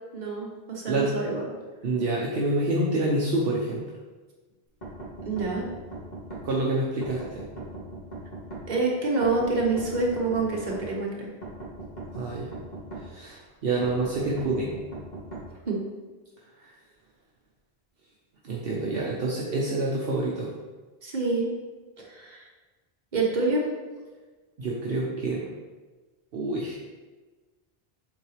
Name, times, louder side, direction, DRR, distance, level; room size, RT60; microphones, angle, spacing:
voice 1, 0.1-1.5 5.2-5.7 8.7-11.3 15.6-15.8 21.0-21.5 22.0-22.5 23.1-23.7, right 3 dB, 45° right, -3 dB, 1.3 m, -27 dB
voice 2, 1.8-3.8 6.4-7.4 12.1-12.5 13.0-14.7 16.6-16.7 18.4-20.5 24.6-25.4 26.3-26.8, right 2 dB, 65° right, -4 dB, 1.0 m, -27 dB
sound 1, 4.8-6.4 7.0-8.6 9.2-10.8 11.4-13.0 13.8-15.4, right 2 dB, 45° left, 1.7 m, -39 dB
7.6 x 3.9 x 3.3 m, 1.3 s
omnidirectional pair, 1.1 m